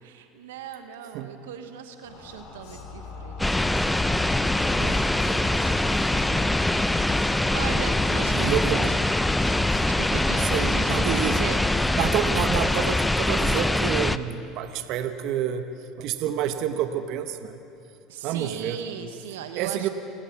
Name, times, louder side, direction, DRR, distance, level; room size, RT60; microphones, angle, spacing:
voice 1, 0.0-7.1 7.5-9.0 9.8-12.0 18.1-19.9, right 8 dB, 85° right, 7 dB, 1.2 m, -39 dB
sound 1, 2.0-13.1, left 4 dB, 70° left, 7.0 m, -41 dB
sound 2, 3.4-14.2, left 1 dB, 10° left, 0.7 m, -23 dB
voice 2, 4.7-5.0 6.0-6.1 8.3-9.0 10.4-11.4 12.0-15.7 16.0-17.6 18.2-18.8 19.6-19.9, right 10 dB, 65° right, 8 dB, 1.2 m, -28 dB
28.0 x 18.0 x 6.0 m, 2.6 s
hypercardioid pair, 85°, 0 cm